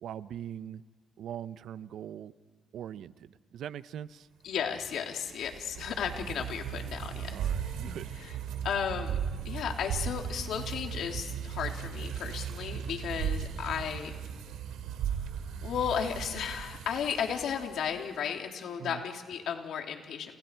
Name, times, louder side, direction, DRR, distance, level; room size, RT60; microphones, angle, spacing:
voice 1, 0.0-0.8 1.2-2.3 2.7-4.3 7.3-8.1 18.8-19.0, right 10 dB, 75° right, 15 dB, 0.7 m, -41 dB
voice 2, 4.4-7.4 7.6-7.7 8.2-8.3 8.6-9.2 9.4-14.1 15.6-20.4, left 8 dB, 75° left, 3 dB, 2.9 m, -34 dB
sound 1, 4.6-18.0, right 8 dB, 90° right, 2.3 m, -37 dB
30.0 x 30.0 x 4.6 m, 1.5 s
cardioid pair, 90°, 0 cm